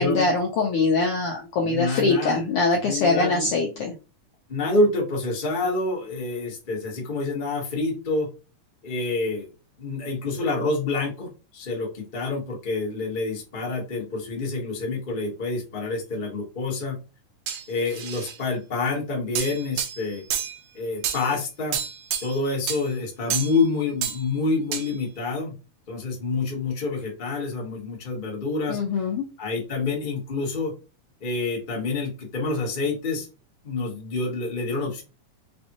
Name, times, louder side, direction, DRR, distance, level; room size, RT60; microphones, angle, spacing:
voice 1, 0.0-4.0 28.7-29.2, left 3 dB, 80° left, 0 dB, 1.3 m, -23 dB
voice 2, 1.6-2.4 2.8-3.5 4.5-8.3 8.8-9.5 9.8-17.0 17.7-20.2 20.7-21.8 22.2-25.5 25.9-29.0 29.4-30.7 31.2-33.3 33.6-35.0, left 3 dB, 45° left, -1 dB, 0.6 m, -27 dB
sound 1, 17.5-18.4 19.3-20.6 21.0-21.3 21.7-22.4 22.7-22.8 23.3-23.6 24.0-24.2 24.7-24.9, right 9 dB, 75° right, 1.7 m, -29 dB
5.3 x 2.7 x 2.9 m, 0.32 s
omnidirectional pair, 3.4 m